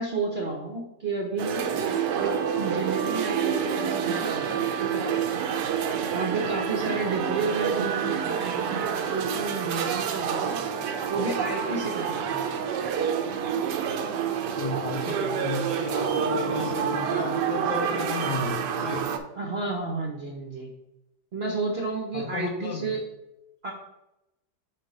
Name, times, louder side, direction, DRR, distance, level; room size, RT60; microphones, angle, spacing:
voice 1, 0.0-5.1 6.1-10.6 11.1-12.4 19.4-20.7 21.3-23.0 23.6-23.7, right 3 dB, 50° right, 0 dB, 0.8 m, -31 dB
sound 1, 1.4-19.2, right 7 dB, 80° right, 1.2 m, -28 dB
voice 2, 14.6-19.1 22.1-23.0, left 4 dB, 80° left, 4 dB, 1.5 m, -33 dB
4.5 x 4.2 x 5.2 m, 0.89 s
omnidirectional pair, 1.9 m